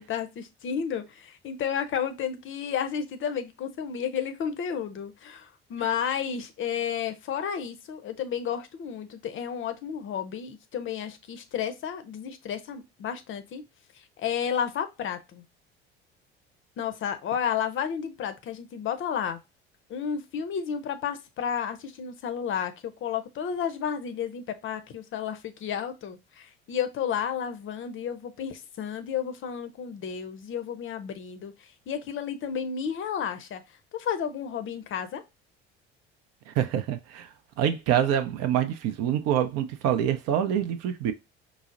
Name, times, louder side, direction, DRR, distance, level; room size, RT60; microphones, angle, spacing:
voice 1, 0.0-13.6 14.2-15.4 16.8-19.4 19.9-33.6 33.9-35.2, left 8 dB, 40° left, 0.6 m, -32 dB
voice 2, 36.5-37.3 37.6-41.1, right 10 dB, 50° right, 0.6 m, -26 dB
4.6 x 2.0 x 2.5 m
figure-of-eight pair, 60°, 32 cm